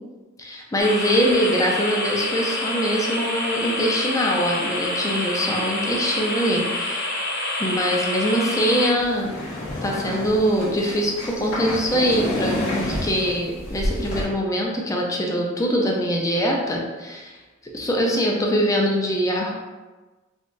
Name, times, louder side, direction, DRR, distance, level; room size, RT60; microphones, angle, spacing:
voice 1, 0.4-7.2 7.6-9.3 9.8-17.4 17.7-19.5, equal, 15° left, -1 dB, 0.4 m, -23 dB
sound 1, 0.8-8.9, left 1 dB, 55° left, 0.7 m, -27 dB
sound 2, 8.9-14.2, left 1 dB, 90° left, 1.0 m, -29 dB
3.7 x 2.4 x 2.5 m, 1.2 s
head